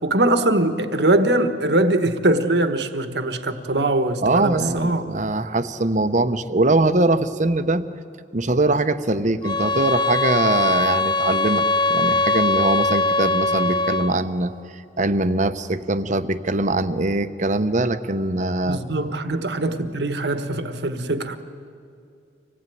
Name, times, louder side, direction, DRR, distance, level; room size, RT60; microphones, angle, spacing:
voice 1, 0.0-5.0 18.7-21.4, right 2 dB, 65° right, 1.4 m, -22 dB
voice 2, 4.2-7.9 8.3-18.8, right 2 dB, 45° right, 1.0 m, -22 dB
sound 1, 9.4-14.2, left 2 dB, 25° left, 0.6 m, -21 dB
25.5 x 18.5 x 9.3 m
head